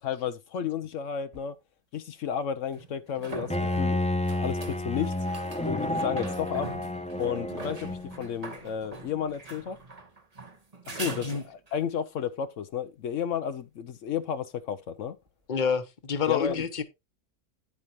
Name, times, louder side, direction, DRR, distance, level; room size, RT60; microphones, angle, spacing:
voice 1, 0.0-1.5 1.9-4.1 4.3-5.1 5.6-6.7 7.2-9.8 10.9-15.2 16.3-16.6, left 8 dB, 75° left, 1.0 m, -32 dB
sound 1, 1.3-1.4 2.7-11.9 15.3-15.4, right 3 dB, 30° right, 1.4 m, -43 dB
Bowed string instrument, 3.5-8.3, left 1 dB, 10° left, 0.3 m, -30 dB
voice 2, 11.1-11.4 15.5-16.8, left 6 dB, 40° left, 1.1 m, -28 dB
10.5 x 8.5 x 3.0 m
omnidirectional pair, 1.3 m